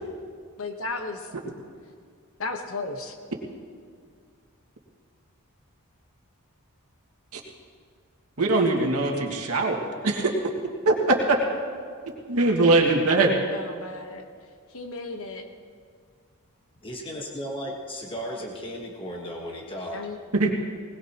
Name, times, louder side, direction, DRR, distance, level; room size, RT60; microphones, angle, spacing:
voice 1, 0.6-1.3 2.4-3.2 13.5-14.2 14.7-15.5 19.9-20.2, left 3 dB, 65° left, 5 dB, 1.1 m, -34 dB
voice 2, 8.4-10.3 10.9-11.0 11.3-11.4 12.3-13.3 20.3-20.5, right 2 dB, 85° right, 0 dB, 2.0 m, -21 dB
voice 3, 16.8-20.0, equal, 25° left, -1 dB, 1.3 m, -35 dB
20.5 x 20.0 x 2.9 m, 2.1 s
head